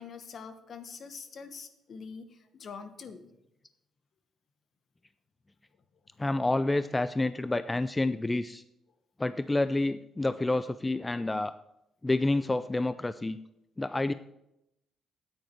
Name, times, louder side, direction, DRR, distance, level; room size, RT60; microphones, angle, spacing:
voice 1, 0.0-3.3, left 5 dB, 55° left, 10 dB, 1.1 m, -44 dB
voice 2, 6.2-8.6 9.2-11.5 12.0-13.4 13.8-14.1, left 2 dB, 15° left, 13 dB, 0.3 m, -28 dB
9.2 x 9.1 x 4.6 m, 0.86 s
cardioid pair, 90°, 0 cm